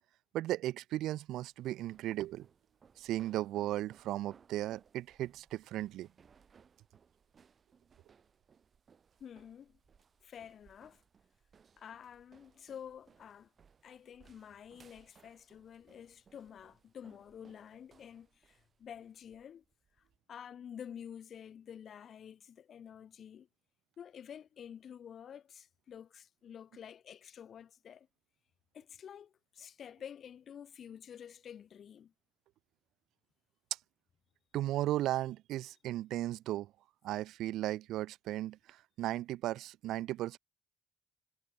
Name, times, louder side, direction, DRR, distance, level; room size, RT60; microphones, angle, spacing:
voice 1, 0.3-2.5 3.0-6.1 34.5-36.7 37.0-40.4, right 14 dB, 90° right, 0.7 m, -36 dB
sound 1, 0.9-20.2, right 6 dB, 45° right, 5.2 m, -66 dB
voice 2, 9.2-9.8 10.2-11.0 11.8-13.5 13.8-19.6 20.3-23.5 24.0-28.1 28.7-32.1, left 8 dB, 60° left, 2.1 m, -50 dB
cardioid pair, 90°, 0 cm